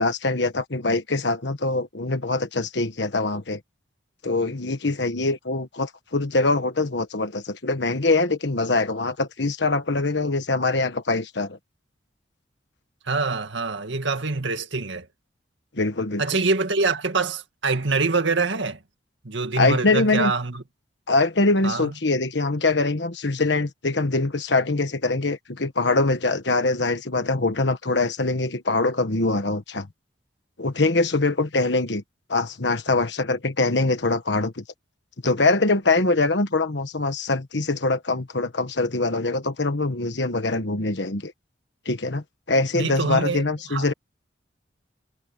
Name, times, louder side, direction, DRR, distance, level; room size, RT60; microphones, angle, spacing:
voice 1, 0.0-3.6 4.2-11.6 15.8-16.2 19.6-20.3 21.1-29.9 30.6-32.0 32.3-34.6 35.2-41.3 41.8-43.9, left 3 dB, 65° left, 1.3 m, -23 dB
voice 2, 13.1-15.1 16.2-18.8 19.2-20.6 21.6-21.9 42.7-43.4 43.7-43.9, right 3 dB, 70° right, 2.0 m, -25 dB
head